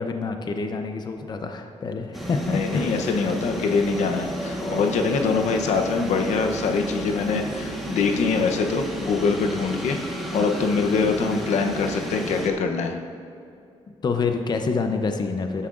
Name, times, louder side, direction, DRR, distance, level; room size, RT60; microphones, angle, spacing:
voice 1, 0.0-3.3 4.6-4.9 14.0-15.7, left 4 dB, 40° left, 6 dB, 0.6 m, -27 dB
sound 1, 2.1-12.5, right 1 dB, ahead, 1.3 m, -32 dB
voice 2, 2.5-13.0, left 4 dB, 85° left, 4 dB, 0.8 m, -24 dB
13.0 x 9.8 x 2.5 m, 2.5 s
cardioid pair, 120°, 12 cm